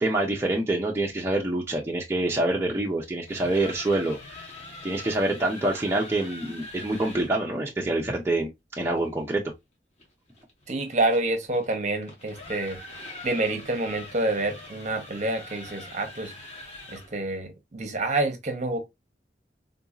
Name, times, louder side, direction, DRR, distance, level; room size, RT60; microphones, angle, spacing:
voice 1, 0.0-4.2 4.8-8.5 8.8-9.4, right 2 dB, 15° right, 0.6 m, -26 dB
sound 1, 3.1-7.4 10.0-17.2, left 2 dB, 35° left, 1.2 m, -43 dB
voice 2, 10.7-12.8 13.2-16.3 16.9-18.8, right 2 dB, 40° right, 0.8 m, -27 dB
3.8 x 2.6 x 2.3 m
head